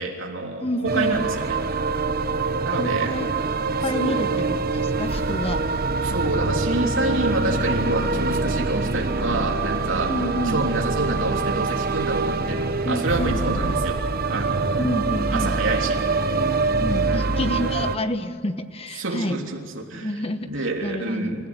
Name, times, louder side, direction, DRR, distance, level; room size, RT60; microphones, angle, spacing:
voice 1, 0.0-1.6 2.6-3.2 3.9-4.2 6.0-10.1 10.5-14.0 14.3-14.8 15.3-16.0 17.1-17.3 19.0-20.1 20.5-21.5, right 2 dB, 65° right, 1 dB, 3.4 m, -27 dB
voice 2, 0.6-1.2 2.7-3.3 3.8-5.6 10.1-10.6 12.8-13.4 14.8-15.6 16.8-19.4 20.0-20.5 20.8-21.5, left 1 dB, 30° left, 9 dB, 1.2 m, -28 dB
sound 1, 0.9-18.0, right 3 dB, 45° right, 1.0 m, -24 dB
28.0 x 15.5 x 9.9 m, 2.2 s
head